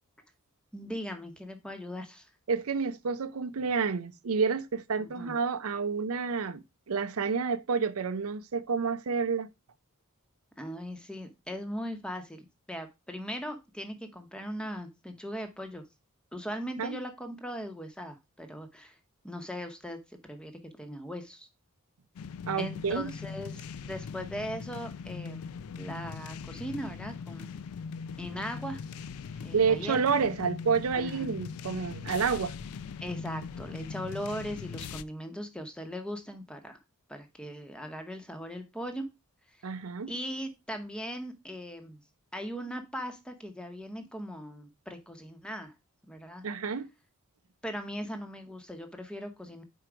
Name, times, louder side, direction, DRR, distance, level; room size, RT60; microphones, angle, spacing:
voice 1, 0.7-2.3 5.0-5.3 10.6-15.8 16.3-19.0 19.2-21.5 22.6-25.5 25.8-27.5 28.2-28.8 29.4-30.2 30.9-31.3 33.0-36.8 37.1-39.1 40.1-42.0 42.3-45.7 46.1-46.4 47.6-49.6, equal, 5° left, 0.8 m, -39 dB
voice 2, 2.5-6.6 6.9-9.5 16.8-17.0 22.5-23.1 29.5-32.5 39.6-40.1 46.4-46.9, right 5 dB, 70° right, 0.5 m, -29 dB
sound 1, 22.2-35.0, left 5 dB, 75° left, 0.4 m, -40 dB
4.6 x 4.5 x 4.9 m
head